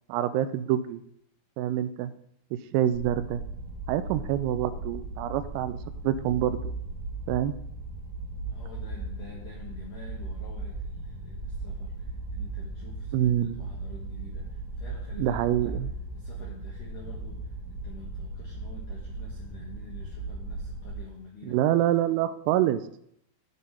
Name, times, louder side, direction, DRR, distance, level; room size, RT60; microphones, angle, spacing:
voice 1, 0.1-1.0 1.6-2.1 2.5-3.4 3.9-5.8 6.0-6.7 7.3-7.5 13.1-13.7 15.1-15.9 21.4-22.8, right 11 dB, 85° right, 11 dB, 3.2 m, -26 dB
sound 1, 2.9-20.9, right 2 dB, 65° right, 1.9 m, -37 dB
voice 2, 8.4-15.4 15.7-15.8 16.1-21.6, left 4 dB, 75° left, -3 dB, 1.9 m, -48 dB
14.0 x 5.4 x 3.7 m, 0.71 s
omnidirectional pair, 5.9 m